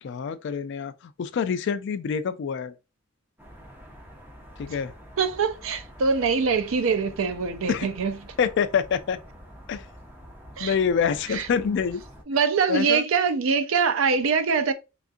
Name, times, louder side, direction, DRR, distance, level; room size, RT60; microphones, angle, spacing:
voice 1, 0.0-2.8 4.6-4.9 7.7-7.9 8.4-9.2 9.7-9.9 10.6-12.0 12.7-13.0, left 6 dB, 60° left, 0.3 m, -26 dB
sound 1, 3.4-12.2, equal, 10° right, 0.6 m, -47 dB
voice 2, 5.2-8.1 10.6-10.7 11.3-11.5 12.3-14.7, right 5 dB, 75° right, 0.5 m, -23 dB
3.6 x 2.4 x 2.5 m
head